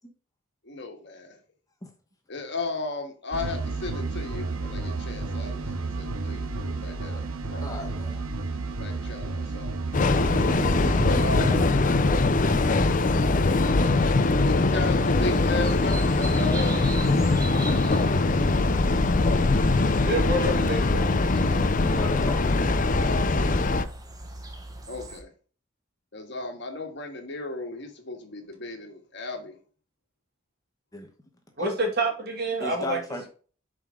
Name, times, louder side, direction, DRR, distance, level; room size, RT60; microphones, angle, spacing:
voice 1, 0.6-1.4 2.3-7.2 7.5-7.9 8.8-9.7 10.9-11.7 14.3-16.8 22.6-23.5 24.9-25.3 26.1-29.6, left 2 dB, 55° left, 4 dB, 1.6 m, -35 dB
sound 1, 3.3-11.7, right 3 dB, 90° right, 0.7 m, -32 dB
voice 2, 7.6-8.2 21.7-22.7 30.9-31.1 32.6-33.3, left 2 dB, 15° left, 3 dB, 1.0 m, -36 dB
Train, 9.9-23.9, left 3 dB, 40° left, 0.5 m, -22 dB
sound 2, 15.1-25.2, right 1 dB, 20° right, 1.2 m, -40 dB
voice 3, 20.1-21.4 31.6-33.0, right 2 dB, 50° right, 2 dB, 2.4 m, -28 dB
7.3 x 5.1 x 3.8 m, 0.39 s
head